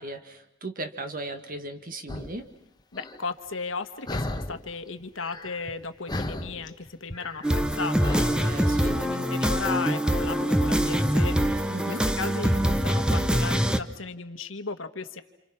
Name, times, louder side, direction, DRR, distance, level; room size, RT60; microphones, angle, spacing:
voice 1, 0.0-2.5 8.4-9.0 11.7-12.0, right 2 dB, 45° right, 8 dB, 1.9 m, -37 dB
sound 1, 2.1-2.4 2.9-3.2 4.1-4.7 5.0-5.8 6.1-8.9, left 1 dB, 20° left, 1.1 m, -35 dB
voice 2, 2.9-15.2, left 4 dB, 85° left, 10 dB, 1.5 m, -36 dB
sound 2, 7.4-13.8, equal, 5° right, 0.9 m, -24 dB
29.0 x 27.5 x 6.0 m, 0.82 s
head